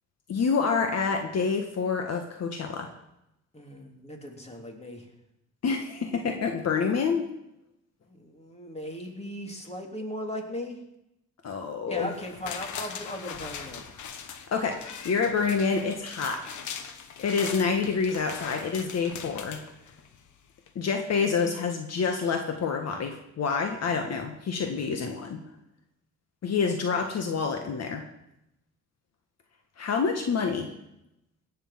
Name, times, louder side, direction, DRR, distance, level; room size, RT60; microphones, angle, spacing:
voice 1, 0.3-2.9 5.6-7.3 11.4-12.1 14.5-16.4 17.2-19.6 20.7-25.4 26.4-28.0 29.8-30.7, left 5 dB, 60° left, 4 dB, 1.6 m, -27 dB
voice 2, 3.5-5.1 8.1-10.8 11.9-13.8, left 1 dB, 20° left, 2 dB, 3.1 m, -38 dB
sound 1, 12.1-20.3 20.7-20.8, left 7 dB, 75° left, 1.5 m, -40 dB
17.5 x 6.8 x 7.4 m, 0.86 s
cardioid pair, 90°, 30 cm